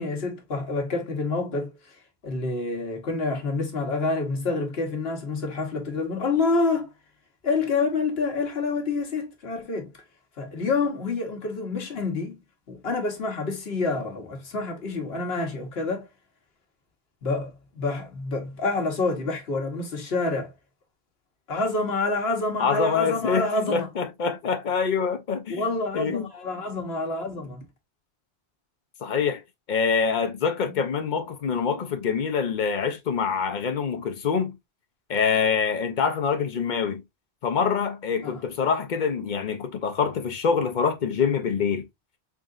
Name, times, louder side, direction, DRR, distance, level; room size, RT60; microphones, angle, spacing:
voice 1, 0.0-2.0 2.2-6.9 7.4-9.9 10.4-12.4 12.7-16.1 17.2-20.5 21.5-23.9 25.5-27.6 30.7-30.8 38.2-38.4, left 3 dB, 75° left, 1.3 m, -27 dB
voice 2, 22.6-25.6 25.9-26.3 29.0-29.4 29.7-34.6 35.1-37.0 37.4-41.9, left 6 dB, 50° left, 0.8 m, -25 dB
3.7 x 3.7 x 2.4 m
omnidirectional pair, 1.1 m